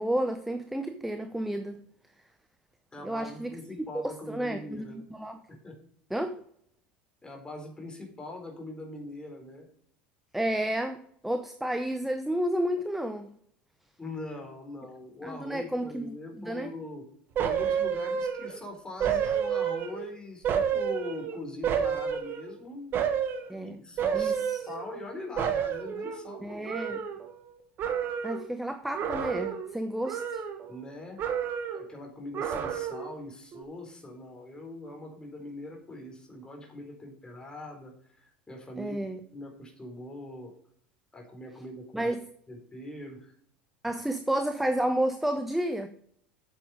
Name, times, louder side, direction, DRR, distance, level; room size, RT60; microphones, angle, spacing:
voice 1, 0.0-1.8 3.0-3.6 4.0-5.4 6.1-6.4 10.3-13.3 15.2-16.7 23.5-23.8 24.1-24.6 26.4-27.0 28.2-30.4 38.8-39.2 41.9-42.3 43.8-45.9, right 1 dB, 5° right, 0.8 m, -31 dB
voice 2, 2.9-5.0 5.5-5.8 7.2-9.7 14.0-17.0 17.4-23.0 23.6-24.4 24.7-26.8 30.7-31.2 31.7-39.1 39.3-40.5 41.1-42.1 42.5-43.3, left 2 dB, 15° left, 4.0 m, -42 dB
sound 1, 17.4-18.6 19.0-20.1 20.4-22.6 22.9-23.5 24.0-25.1 25.4-27.5 27.8-28.5 28.9-29.7 30.0-30.9 31.2-31.9 32.3-33.1 33.5-33.6, right 8 dB, 40° right, 1.6 m, -30 dB
8.7 x 7.7 x 5.1 m
figure-of-eight pair, 75°, 5 cm